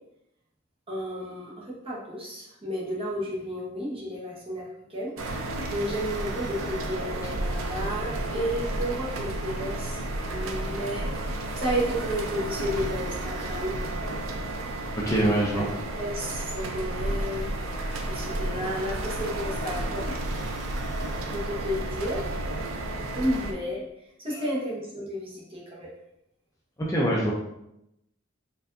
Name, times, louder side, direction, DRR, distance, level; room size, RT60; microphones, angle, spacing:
voice 1, 0.9-10.0 10.3-13.8 15.5-15.7 16.0-17.5 18.1-20.1 21.3-22.3 23.1-25.9, equal, 30° right, -5 dB, 1.0 m, -32 dB
sound 1, 5.2-23.5, right 1 dB, 90° right, 0.5 m, -32 dB
voice 2, 14.9-15.6 26.8-27.3, right 1 dB, 15° left, -5 dB, 0.5 m, -24 dB
4.3 x 2.6 x 2.6 m, 0.83 s
head